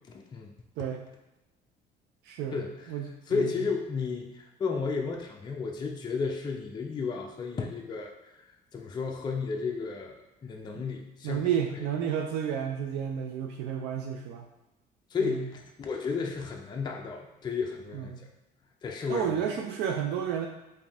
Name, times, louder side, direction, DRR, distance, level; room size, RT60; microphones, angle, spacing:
voice 1, 0.1-0.5 2.5-2.9 3.3-8.3 8.7-11.5 11.8-11.9 15.1-18.1 18.8-19.3, left 5 dB, 25° left, 1 dB, 0.4 m, -33 dB
voice 2, 0.8-1.1 2.3-2.6 2.9-3.5 11.2-14.4 15.2-15.5 17.9-18.2 19.1-20.5, right 8 dB, 85° right, 3 dB, 0.4 m, -31 dB
4.0 x 2.7 x 3.4 m, 0.98 s
cardioid pair, 110°, 17 cm